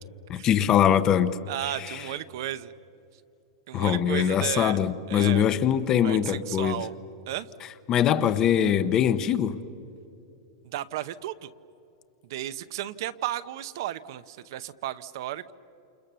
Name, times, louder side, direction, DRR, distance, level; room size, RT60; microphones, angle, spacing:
voice 1, 0.3-1.3 1.6-2.1 3.7-6.9 7.9-9.6, left 9 dB, 20° left, 13 dB, 0.8 m, -23 dB
voice 2, 1.5-2.7 3.7-5.5 6.0-6.9 7.3-7.5 10.7-11.5 12.3-15.5, right 13 dB, 55° right, 13 dB, 0.8 m, -34 dB
29.0 x 28.5 x 6.9 m, 2.7 s
supercardioid pair, 170°, 3 cm